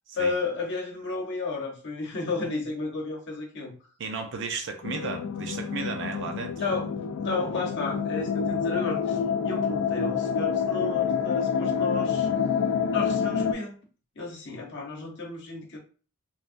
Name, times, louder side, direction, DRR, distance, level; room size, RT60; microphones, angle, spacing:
voice 1, 0.1-3.8 6.6-12.3 12.9-13.8 14.2-15.8, left 3 dB, 55° left, 0.8 m, -32 dB
voice 2, 4.0-6.5, right 4 dB, 55° right, 0.5 m, -34 dB
sound 1, 4.8-13.5, left 7 dB, 75° left, 0.3 m, -27 dB
3.1 x 2.3 x 2.5 m
head